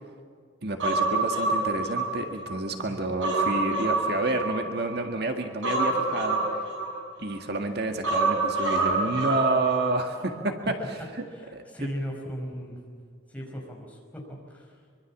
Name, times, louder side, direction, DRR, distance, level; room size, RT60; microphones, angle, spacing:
voice 1, 0.6-6.6 7.2-11.2 11.5-11.9, right 2 dB, 55° right, 4 dB, 1.9 m, -29 dB
Human voice, 0.8-2.6 3.0-5.0 5.6-7.4 8.0-10.0 10.3-10.4, right 3 dB, 75° right, 7.7 m, -27 dB
voice 2, 11.3-12.8 13.3-14.8, equal, 5° left, -1 dB, 5.3 m, -37 dB
24.5 x 24.0 x 7.4 m, 2.1 s
head